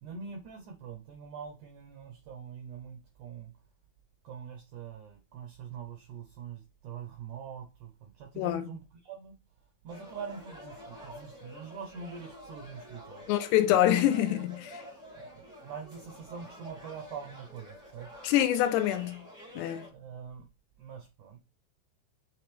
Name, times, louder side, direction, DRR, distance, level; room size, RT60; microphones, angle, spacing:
voice 1, 0.0-3.5 4.2-9.3 9.8-13.2 15.1-18.1 19.9-20.5 20.8-21.4, right 7 dB, 80° right, 1.7 m, -44 dB
voice 2, 8.4-8.7 13.3-14.8 18.2-19.2 19.6-19.9, left 12 dB, 90° left, 2.9 m, -26 dB
sound 1, 9.9-19.9, left 1 dB, 5° right, 0.3 m, -49 dB
9.3 x 3.4 x 3.4 m
omnidirectional pair, 4.7 m